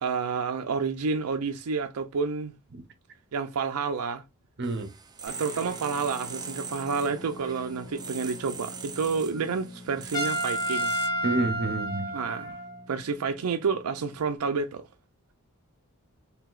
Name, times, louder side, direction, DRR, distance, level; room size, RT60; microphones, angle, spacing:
voice 1, 0.0-2.5 3.3-4.2 5.2-10.9 12.1-12.6 12.9-14.9, right 5 dB, 85° right, 0.5 m, -29 dB
sound 1, 4.6-11.1, right 6 dB, 20° right, 0.4 m, -41 dB
voice 2, 4.6-4.9 11.2-12.1, right 2 dB, 50° right, 0.7 m, -28 dB
Guitar, 5.3-14.4, left 2 dB, 45° left, 1.6 m, -47 dB
Trumpet, 10.1-12.8, equal, 20° left, 1.9 m, -30 dB
4.7 x 3.3 x 2.4 m
head